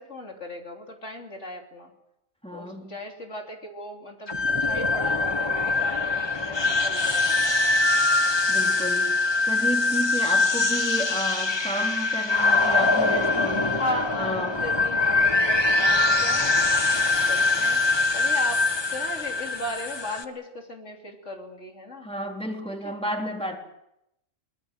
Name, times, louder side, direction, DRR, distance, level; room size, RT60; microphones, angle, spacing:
voice 1, 0.0-1.9 2.5-7.3 13.8-16.6 17.2-17.8 18.1-22.1 22.8-22.9, left 1 dB, 70° left, 1 dB, 3.6 m, -36 dB
voice 2, 2.4-2.9 8.5-9.2 9.4-13.8 14.2-14.6 22.0-23.6, equal, 5° left, 0 dB, 3.8 m, -31 dB
sound 1, 4.3-20.2, left 3 dB, 20° left, 1.3 m, -23 dB
24.0 x 20.5 x 7.9 m, 0.85 s
omnidirectional pair, 1.3 m